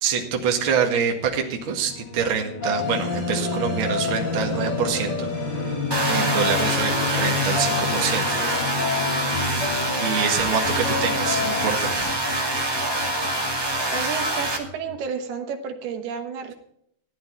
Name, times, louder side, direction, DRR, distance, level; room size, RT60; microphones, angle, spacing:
voice 1, 0.0-5.3 5.6-5.8 6.0-8.4 10.0-12.1, right 7 dB, 45° right, 1 dB, 1.9 m, -26 dB
sound 1, 1.6-15.0, left 4 dB, 80° left, 3.3 m, -34 dB
sound 2, 2.6-12.9, left 4 dB, 25° left, 7.6 m, -29 dB
sound 3, 5.9-14.6, right 1 dB, 10° right, 1.2 m, -25 dB
voice 2, 13.9-16.5, right 6 dB, 75° right, 5 dB, 3.1 m, -31 dB
14.5 x 11.0 x 4.5 m, 0.70 s
omnidirectional pair, 4.6 m